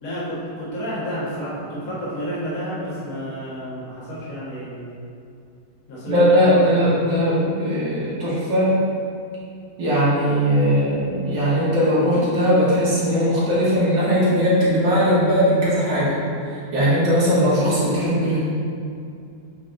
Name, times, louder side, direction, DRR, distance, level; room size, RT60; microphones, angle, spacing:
voice 1, 0.0-5.1 5.9-7.0, equal, 55° left, -11 dB, 2.1 m, -30 dB
voice 2, 6.1-8.7 9.8-16.2 16.7-18.4, equal, 80° right, -9 dB, 2.4 m, -19 dB
8.2 x 3.3 x 3.9 m, 2.5 s
omnidirectional pair, 1.9 m